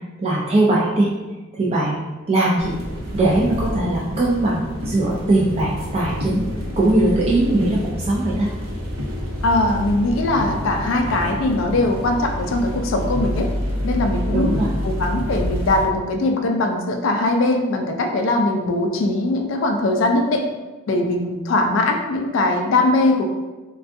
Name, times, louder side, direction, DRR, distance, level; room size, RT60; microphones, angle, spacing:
voice 1, 0.2-1.1 1.6-2.8 3.1-6.4 6.8-8.5 14.3-14.7, right 2 dB, 30° right, -5 dB, 0.3 m, -20 dB
sound 1, 2.6-15.9, equal, 85° right, 0.7 m, -28 dB
voice 2, 9.4-13.5 13.8-14.6 14.8-20.4 20.9-23.2, left 2 dB, 65° left, 3 dB, 0.3 m, -20 dB
3.4 x 2.3 x 2.5 m, 1.2 s
head